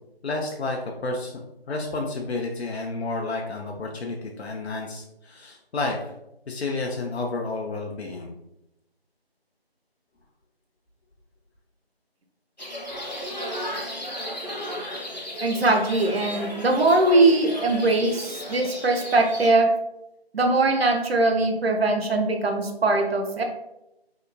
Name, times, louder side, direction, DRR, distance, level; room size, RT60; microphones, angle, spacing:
voice 1, 0.2-1.3 1.7-6.1 6.5-8.3, left 3 dB, 85° left, 1 dB, 0.5 m, -30 dB
sound 1, 12.6-19.5, left 1 dB, 45° left, 0.6 m, -34 dB
voice 2, 15.4-19.7 20.3-23.4, right 2 dB, 75° right, 4 dB, 0.6 m, -21 dB
2.8 x 2.1 x 2.4 m, 0.87 s
figure-of-eight pair, 180°, 31 cm